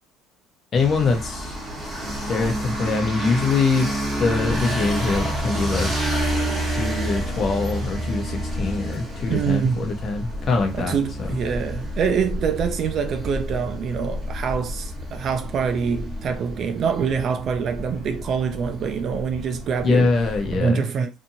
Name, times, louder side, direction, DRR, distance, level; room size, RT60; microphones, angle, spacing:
voice 1, 0.7-1.6 2.3-3.9 4.2-6.1 6.7-10.9 11.2-11.3 19.8-20.8, left 4 dB, 40° left, 0.8 m, -23 dB
sound 1, 0.7-20.6, equal, 10° right, 1.1 m, -29 dB
voice 2, 9.3-9.9 10.8-20.1 20.5-21.1, right 6 dB, 45° right, 0.3 m, -25 dB
2.7 x 2.5 x 2.6 m
cardioid pair, 130°, 0 cm